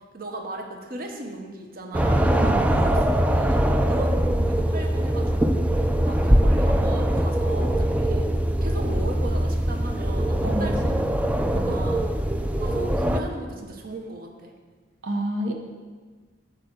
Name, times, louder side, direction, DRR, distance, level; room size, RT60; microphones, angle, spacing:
voice 1, 0.1-8.3 8.6-12.1 12.6-14.5, right 1 dB, 50° right, 3 dB, 0.9 m, -36 dB
sound 1, 1.9-13.2, right 1 dB, 5° right, 0.3 m, -22 dB
voice 2, 10.4-10.9 11.5-11.8 15.0-15.5, right 1 dB, 80° right, 3 dB, 0.8 m, -29 dB
9.1 x 4.2 x 6.7 m, 1.5 s
head